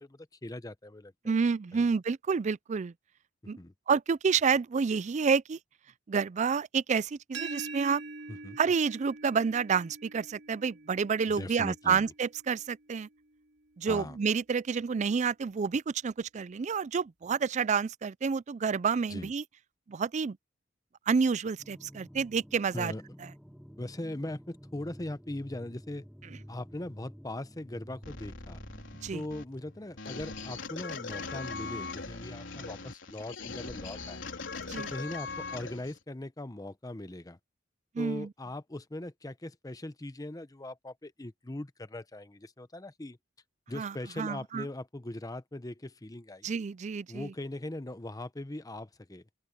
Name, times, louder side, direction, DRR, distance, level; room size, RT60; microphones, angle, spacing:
voice 1, 0.0-1.4 1.7-1.9 3.6-3.7 8.3-8.6 11.3-12.1 13.9-14.2 19.1-19.3 22.7-23.0 23.8-26.0 26.5-28.6 29.1-34.2 34.8-37.4 38.0-43.2 43.7-46.5 47.1-49.2, left 1 dB, 20° left, 0.8 m, -40 dB
voice 2, 1.2-2.9 3.5-3.6 3.9-5.6 6.1-8.0 8.6-13.1 13.8-19.4 19.9-20.4 21.1-22.9 23.2-23.3 29.0-29.2 34.7-34.9 37.9-38.3 43.7-44.7 46.4-47.3, right 5 dB, 40° right, 0.4 m, -29 dB
sound 1, 7.3-13.1, right 3 dB, 65° right, 3.1 m, -45 dB
sound 2, 21.6-29.9, equal, ahead, 4.6 m, -51 dB
sound 3, 28.0-36.0, left 4 dB, 80° left, 4.1 m, -41 dB
open air
head